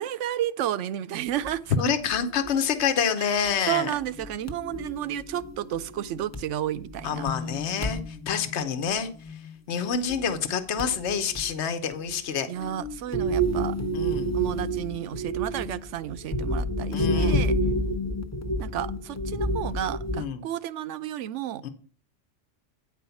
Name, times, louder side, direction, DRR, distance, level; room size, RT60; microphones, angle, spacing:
voice 1, 0.0-1.7 3.2-7.3 12.5-13.8 14.3-17.5 18.6-21.6, right 12 dB, 85° right, 0.9 m, -32 dB
sound 1, 1.4-1.6 2.1-2.5 2.8-2.9 3.4-3.5 4.0-6.4 6.8-9.6 9.9-10.4 10.8-11.5 11.9-12.3 12.6-20.2, right 1 dB, 15° left, 0.7 m, -30 dB
voice 2, 1.8-3.9 7.0-9.4 9.7-12.5 13.9-14.3 16.9-17.4 20.2-20.4 21.6-21.7, left 7 dB, 70° left, 1.2 m, -27 dB
9.4 x 4.7 x 6.9 m
omnidirectional pair, 1.2 m